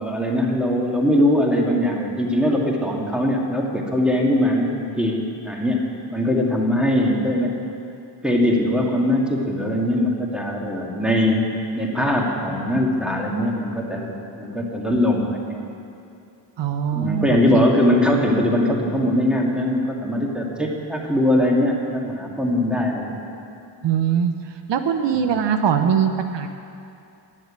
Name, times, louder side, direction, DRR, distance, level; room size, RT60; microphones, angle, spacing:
voice 1, 0.0-5.8 6.1-7.6 8.2-11.4 11.7-15.6 16.9-23.2 25.1-25.2, left 1 dB, ahead, -1 dB, 2.4 m, -21 dB
voice 2, 16.6-17.7 23.8-24.3 24.7-26.5, right 8 dB, 75° right, 7 dB, 0.8 m, -21 dB
11.0 x 7.5 x 8.8 m, 2.6 s
cardioid pair, 45°, 44 cm